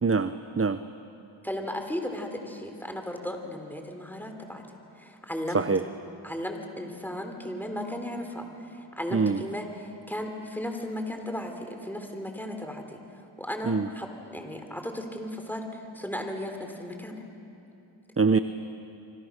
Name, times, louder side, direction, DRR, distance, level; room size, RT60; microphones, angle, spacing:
voice 1, 0.0-0.8 5.5-5.8 9.1-9.4 13.7-13.9 18.2-18.4, right 4 dB, 30° right, 11 dB, 0.8 m, -24 dB
voice 2, 1.4-4.6 5.0-5.6 6.2-13.0 13.4-17.2, left 1 dB, 5° left, 4 dB, 3.9 m, -35 dB
27.5 x 25.0 x 6.6 m, 2.8 s
cardioid pair, 40°, 49 cm